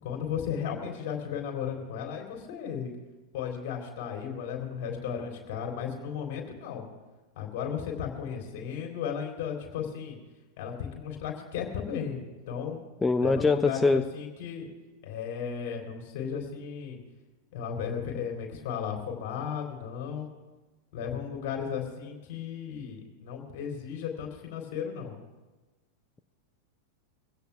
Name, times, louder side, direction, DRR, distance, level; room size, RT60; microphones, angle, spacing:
voice 1, 0.0-2.9 3.3-6.9 7.3-10.2 10.6-12.8 13.2-14.7 15.0-17.0 17.5-20.3 20.9-25.1, left 7 dB, 50° left, 1 dB, 3.5 m, -35 dB
voice 2, 13.0-14.0, left 3 dB, 10° left, 10 dB, 0.4 m, -23 dB
23.5 x 16.5 x 2.4 m, 1.2 s
figure-of-eight pair, 90°, 0 cm